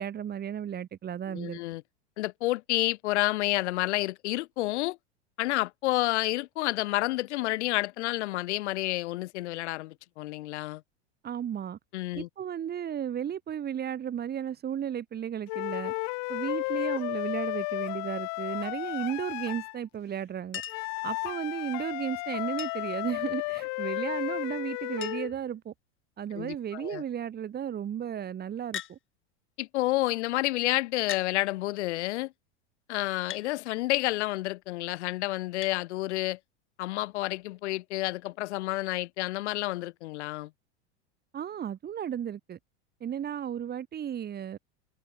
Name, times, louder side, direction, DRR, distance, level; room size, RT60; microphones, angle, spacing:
voice 1, 0.0-1.6 11.2-11.8 12.1-15.9 16.3-20.6 21.0-25.7 26.2-29.0 41.3-42.6 43.0-44.6, right 9 dB, 25° right, 1.6 m, -34 dB
voice 2, 1.3-1.8 2.2-5.0 5.4-10.8 11.9-12.3 26.3-27.0 29.6-32.3 32.9-36.4 36.8-40.5, left 18 dB, 75° left, 1.5 m, -30 dB
sound 1, 15.5-19.8 20.7-25.3, left 30 dB, 50° left, 0.7 m, -33 dB
Chink clink, 20.5-21.0 22.6-23.0 24.4-24.5 24.7-24.8 25.0-25.5 26.2-26.6 28.7-29.0 30.0-30.1 31.1-31.3 33.3-33.5 35.6-35.8 37.2-37.3, left 11 dB, 35° left, 3.3 m, -39 dB
hypercardioid pair, 100°, 35 cm